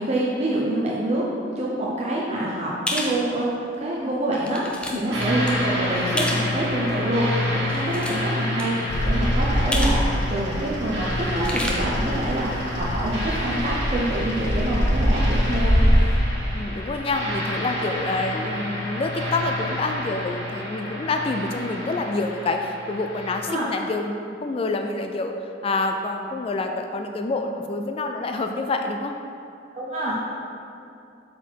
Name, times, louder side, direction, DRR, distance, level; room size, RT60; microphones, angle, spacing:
voice 1, 0.0-4.6 4.9-15.7 23.5-23.7 29.7-30.2, right 1 dB, 35° right, -5 dB, 0.8 m, -26 dB
sound 1, 2.9-3.1 3.7-3.8 4.3-4.9 5.2-5.5 6.2-6.5 7.6-8.3 8.6-8.7 9.7-10.0 10.3-10.4 11.3-11.7, left 1 dB, 5° left, 0.7 m, -28 dB
sound 2, 5.1-23.4, left 1 dB, 80° right, 1.7 m, -29 dB
Bird vocalization bird call bird song, 8.9-16.2, equal, 70° left, 1.2 m, -24 dB
voice 2, 16.5-25.3 25.6-29.2, left 3 dB, 30° left, 5 dB, 0.3 m, -27 dB
8.0 x 4.3 x 4.5 m, 2.6 s
head